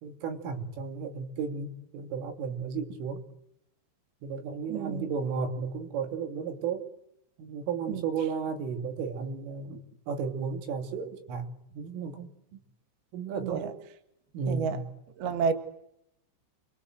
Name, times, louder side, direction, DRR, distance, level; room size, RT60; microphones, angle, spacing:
voice 1, 0.0-3.2 4.2-6.9 7.4-9.8 10.1-12.6 13.1-13.8 14.3-14.9, right 5 dB, 80° right, 6 dB, 5.2 m, -34 dB
voice 2, 4.7-5.1 7.9-8.1 13.4-13.7 14.5-14.8 15.2-15.5, right 6 dB, 60° right, 8 dB, 3.4 m, -30 dB
29.5 x 22.5 x 7.9 m, 0.75 s
omnidirectional pair, 5.7 m